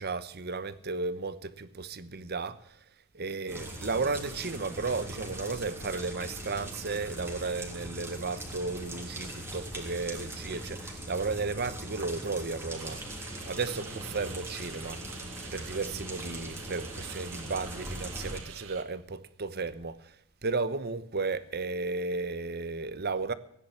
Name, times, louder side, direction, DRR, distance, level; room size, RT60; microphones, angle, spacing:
voice 1, 0.0-2.8 3.1-13.0 13.5-15.0 15.5-20.1 20.4-23.3, right 3 dB, 50° right, 1.0 m, -34 dB
sound 1, 3.5-18.4, right 1 dB, 10° right, 3.5 m, -41 dB
sound 2, 12.7-18.8, right 7 dB, 65° right, 2.1 m, -48 dB
16.5 x 10.0 x 7.2 m
head